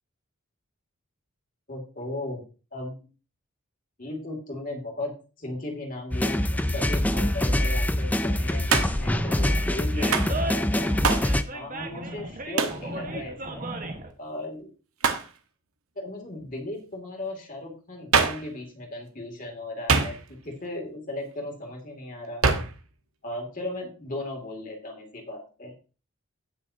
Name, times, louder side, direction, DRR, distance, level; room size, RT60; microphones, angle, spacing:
voice 1, 1.7-2.4 2.7-3.1 4.0-5.1 5.4-10.2 10.5-10.9 11.5-13.7 14.2-14.7 16.0-20.2 20.4-22.4 23.2-25.7, left 1 dB, 40° left, 1 dB, 2.5 m, -36 dB
sound 1, 6.1-11.4, left 1 dB, 5° left, 0.4 m, -24 dB
Hands, 8.7-9.1 10.1-10.4 11.0-11.3 12.6-12.8 15.0-15.3 18.1-18.5 19.9-20.5 22.4-22.8, right 5 dB, 80° right, 1.3 m, -24 dB
Animal, 9.1-14.1, right 2 dB, 40° right, 1.3 m, -35 dB
17.0 x 6.2 x 2.8 m, 0.35 s
head